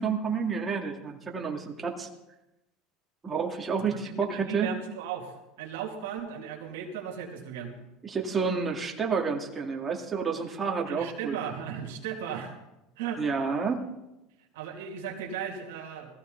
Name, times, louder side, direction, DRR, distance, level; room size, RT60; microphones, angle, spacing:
voice 1, 0.0-2.1 3.2-4.7 8.0-11.4 13.2-13.8, right 5 dB, 25° right, 0 dB, 2.3 m, -30 dB
voice 2, 3.8-7.7 10.9-12.5 13.0-13.2 14.5-16.1, right 7 dB, 85° right, 2 dB, 2.6 m, -36 dB
18.5 x 15.0 x 4.0 m, 0.93 s
supercardioid pair, 110°, 0 cm